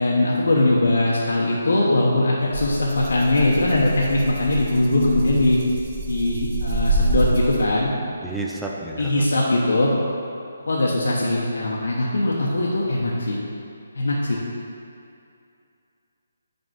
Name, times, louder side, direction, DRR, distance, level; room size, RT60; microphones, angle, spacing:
voice 1, 0.0-5.6 6.1-7.9 9.0-9.9 10.7-13.4 13.9-14.4, left 2 dB, 80° left, -4 dB, 1.0 m, -21 dB
Rattle (instrument), 2.5-7.9, right 2 dB, 40° right, 1.0 m, -27 dB
voice 2, 8.2-9.3, right 2 dB, 5° right, -3 dB, 0.5 m, -31 dB
5.2 x 4.7 x 6.3 m, 2.5 s
hypercardioid pair, 165°, 0 cm